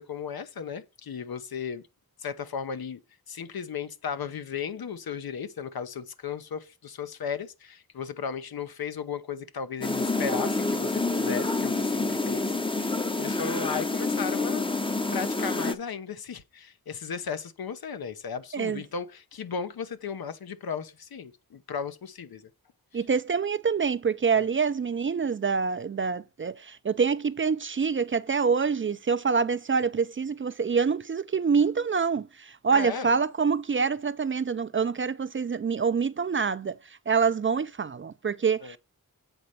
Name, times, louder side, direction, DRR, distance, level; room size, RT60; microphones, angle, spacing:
voice 1, 0.0-1.8 2.2-3.0 3.3-14.7 15.1-22.4 22.9-23.0 24.4-24.5 32.7-33.1 38.6-38.8, left 6 dB, 80° left, 0.9 m, -35 dB
sound 1, 9.8-15.7, left 3 dB, 15° left, 0.6 m, -28 dB
voice 2, 22.9-36.8 37.1-38.8, right 5 dB, 35° right, 0.4 m, -26 dB
8.0 x 4.3 x 6.6 m
wide cardioid pair, 135°, 36 cm